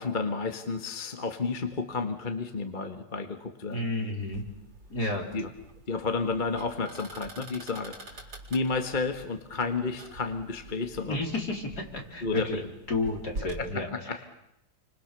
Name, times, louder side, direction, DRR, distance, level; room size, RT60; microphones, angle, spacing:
voice 1, 0.0-3.9 5.3-5.5 5.9-11.2 12.2-12.7 13.6-14.2, left 4 dB, 30° left, 6 dB, 1.6 m, -31 dB
voice 2, 3.7-4.4 4.9-5.3 11.0-12.6 12.9-13.9, left 2 dB, 60° left, 1 dB, 4.8 m, -31 dB
sound 1, 4.2-13.6, right 2 dB, 80° right, 5.2 m, -46 dB
30.0 x 25.5 x 6.8 m, 0.85 s
omnidirectional pair, 2.0 m